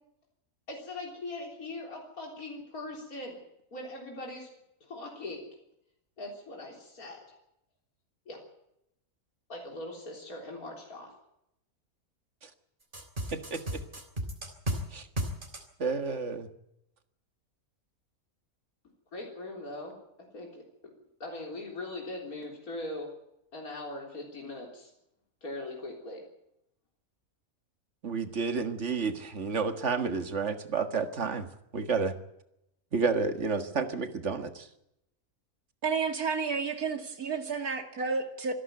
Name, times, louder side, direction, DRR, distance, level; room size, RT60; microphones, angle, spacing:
voice 1, 0.7-3.4 3.7-4.5 4.8-5.4 6.2-7.4 8.3-8.4 9.5-11.1 19.1-19.9 20.3-20.6 21.2-23.1 23.5-24.9 25.4-26.2, left 2 dB, 75° left, 0 dB, 4.1 m, -40 dB
sound 1, 12.9-14.8 15.2-15.6, right 1 dB, 35° right, 3.7 m, -33 dB
voice 2, 15.8-16.5 28.0-31.5 31.7-32.2 32.9-34.7, right 4 dB, 50° right, 8 dB, 2.0 m, -30 dB
voice 3, 35.8-38.5, right 5 dB, 80° right, 6 dB, 2.8 m, -31 dB
26.0 x 11.0 x 9.3 m, 0.82 s
omnidirectional pair, 1.5 m